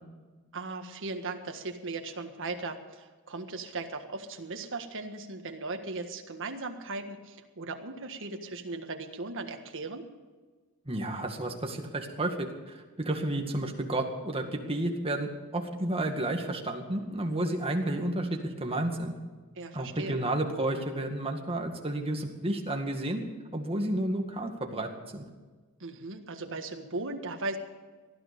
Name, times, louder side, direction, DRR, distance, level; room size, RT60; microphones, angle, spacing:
voice 1, 0.5-10.0 19.6-20.2 25.8-27.6, right 3 dB, 60° right, 4 dB, 1.7 m, -37 dB
voice 2, 10.9-12.4 12.7-19.1 19.7-23.2 23.5-25.3, right 1 dB, 25° right, 3 dB, 2.0 m, -31 dB
19.5 x 12.5 x 5.3 m, 1.4 s
head